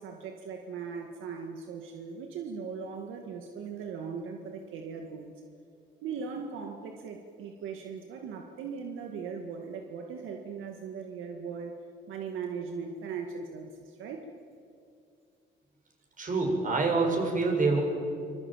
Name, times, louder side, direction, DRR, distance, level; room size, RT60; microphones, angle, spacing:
voice 1, 0.0-5.3 6.0-11.8 12.1-14.3, right 6 dB, 85° right, 3 dB, 2.0 m, -39 dB
voice 2, 16.2-17.8, right 3 dB, 40° right, 1 dB, 7.5 m, -26 dB
25.5 x 22.0 x 9.0 m, 2.4 s
cardioid pair, 90°, 20 cm